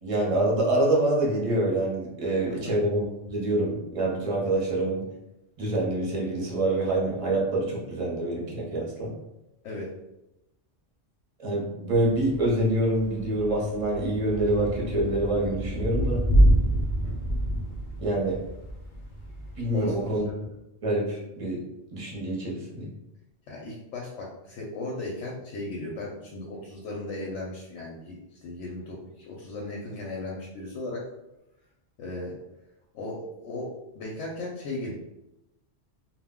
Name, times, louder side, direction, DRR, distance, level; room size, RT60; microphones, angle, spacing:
voice 1, 0.0-5.1 5.6-9.1 11.4-16.2 18.0-18.4 19.6-20.2 20.8-21.6 21.9-22.9, right 1 dB, 40° right, -3 dB, 0.6 m, -26 dB
Thunder / Rain, 11.9-20.2, right 1 dB, 55° left, 0.7 m, -27 dB
voice 2, 19.7-20.1 23.5-31.1 32.0-32.4 32.9-34.9, left 2 dB, 85° left, -3 dB, 0.9 m, -36 dB
2.2 x 2.1 x 3.5 m, 0.91 s
omnidirectional pair, 1.2 m